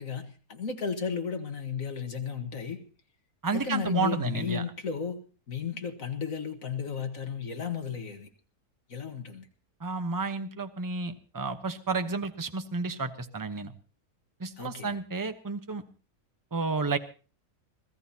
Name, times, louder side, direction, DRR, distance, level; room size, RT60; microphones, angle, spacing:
voice 1, 0.0-2.8 3.5-5.2 5.5-8.3 8.9-9.5 14.6-15.0, left 6 dB, 60° left, 6 dB, 1.9 m, -34 dB
voice 2, 3.4-4.6 9.8-13.7 14.4-15.8 16.5-17.0, right 4 dB, 15° right, 8 dB, 0.8 m, -31 dB
25.5 x 16.0 x 2.9 m, 0.36 s
omnidirectional pair, 1.6 m